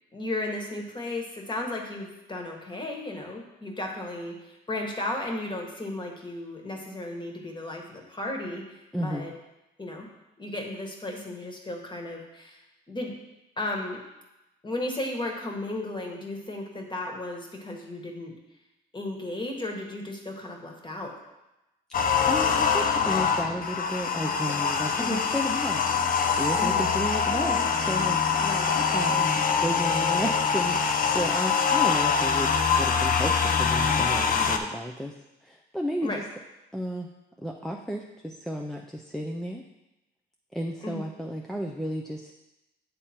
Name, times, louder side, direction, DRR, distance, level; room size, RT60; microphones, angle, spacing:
voice 1, 0.1-8.6 9.0-9.3 9.8-10.1 10.4-12.6 12.9-13.1 13.6-14.0 14.6-18.3 18.9-21.1 25.0-25.2 26.6-26.8 28.4-28.7 36.0-36.2 40.8-41.0, left 2 dB, 25° left, 1 dB, 1.5 m, -34 dB
voice 2, 8.9-9.3 22.3-25.8 26.4-28.2 28.9-35.1 35.4-36.2 36.7-37.1 37.4-39.6 40.5-42.3, equal, ahead, 0 dB, 0.5 m, -33 dB
sound 1, 21.9-34.6, left 6 dB, 45° left, 0.6 m, -24 dB
8.6 x 3.5 x 4.4 m, 0.98 s
cardioid pair, 90°, 20 cm